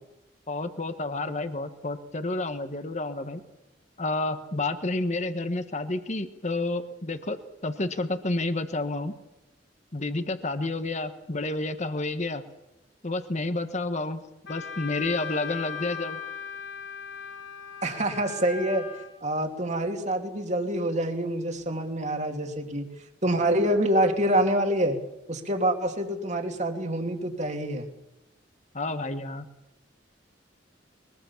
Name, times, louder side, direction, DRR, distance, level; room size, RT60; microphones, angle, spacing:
voice 1, 0.5-3.4 4.0-7.4 7.6-9.1 9.9-12.4 13.0-14.2 14.5-16.2 28.7-29.4, left 2 dB, 40° left, 9 dB, 1.4 m, -30 dB
Wind instrument woodwind instrument, 14.5-19.1, left 7 dB, 70° left, 3.8 m, -38 dB
voice 2, 17.8-18.9 19.2-22.9 23.2-25.0 25.3-27.9, right 1 dB, 40° right, 4 dB, 2.8 m, -26 dB
22.5 x 20.0 x 7.3 m, 0.98 s
head